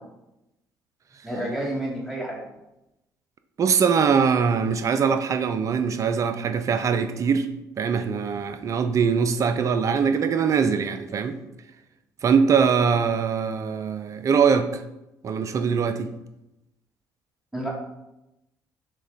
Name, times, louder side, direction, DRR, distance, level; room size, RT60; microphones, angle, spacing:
voice 1, 1.2-2.4 17.5-17.7, right 1 dB, 5° right, -4 dB, 1.5 m, -29 dB
voice 2, 3.6-7.5 7.8-11.4 12.2-14.7 15.2-16.1, right 6 dB, 35° right, 10 dB, 0.4 m, -22 dB
6.2 x 2.2 x 3.6 m, 0.91 s
figure-of-eight pair, 50°, 9 cm